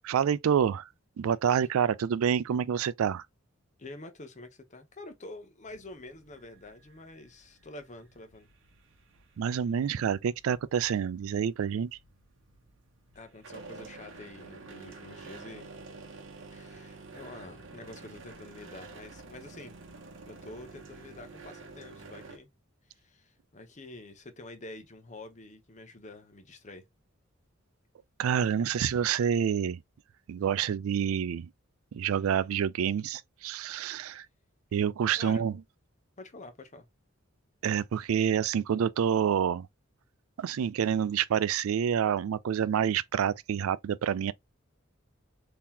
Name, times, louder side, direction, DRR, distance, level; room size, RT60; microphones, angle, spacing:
voice 1, 0.0-0.9 1.2-3.3 9.4-11.9 28.2-29.8 30.3-31.5 31.9-34.3 34.7-35.5 37.6-39.7 40.4-44.3, right 8 dB, 85° right, 0.3 m, -28 dB
voice 2, 3.8-8.5 13.1-15.7 16.5-19.8 20.3-22.5 22.9-26.9 35.2-35.4 36.2-36.9, left 2 dB, 35° left, 0.7 m, -47 dB
sound 1, 5.7-22.4, right 3 dB, 60° right, 0.9 m, -50 dB
3.8 x 2.9 x 2.7 m
head